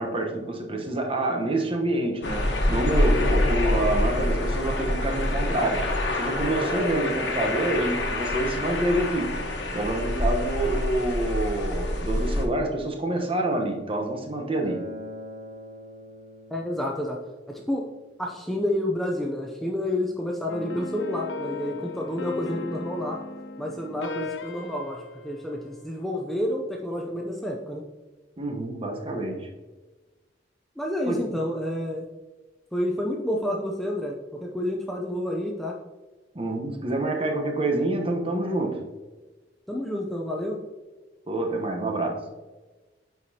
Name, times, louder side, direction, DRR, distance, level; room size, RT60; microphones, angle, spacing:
voice 1, 0.0-9.4 9.7-14.9 28.4-29.5 31.1-31.4 36.3-38.8 41.3-42.2, right 1 dB, 30° right, 3 dB, 1.0 m, -27 dB
sound 1, 2.2-12.4, left 1 dB, 75° left, 1.2 m, -26 dB
Acoustic guitar, 14.6-19.8, left 1 dB, 75° right, 0.8 m, -45 dB
voice 2, 16.5-17.2 17.5-17.8 18.2-23.2 23.6-27.8 30.8-32.1 32.7-35.7 39.7-40.6, left 1 dB, ahead, -1 dB, 0.5 m, -29 dB
sound 2, 20.5-26.1, left 3 dB, 90° left, 0.5 m, -37 dB
9.2 x 4.9 x 2.8 m, 1.2 s
head